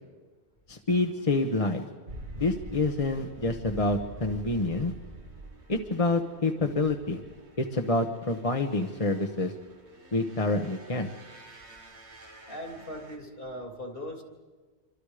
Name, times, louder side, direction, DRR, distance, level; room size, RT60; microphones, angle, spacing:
voice 1, 0.7-1.8 2.4-4.9 5.7-7.2 7.6-9.5 10.1-11.1, left 2 dB, 30° left, 3 dB, 1.3 m, -27 dB
sound 1, 2.1-13.2, right 1 dB, 90° right, 2.4 m, -47 dB
voice 2, 12.5-14.2, equal, 55° left, 3 dB, 3.3 m, -39 dB
27.5 x 25.0 x 5.1 m, 1.4 s
omnidirectional pair, 1.1 m